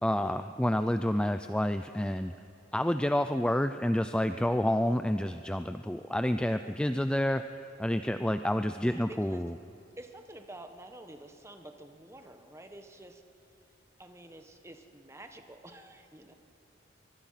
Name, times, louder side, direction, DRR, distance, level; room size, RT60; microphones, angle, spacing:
voice 1, 0.0-2.3 2.7-7.4 7.8-9.5, left 1 dB, 5° left, 9 dB, 0.4 m, -29 dB
voice 2, 8.8-9.4 10.0-13.2 14.0-16.3, right 1 dB, 15° right, 6 dB, 1.3 m, -49 dB
23.5 x 23.0 x 5.8 m, 2.8 s
head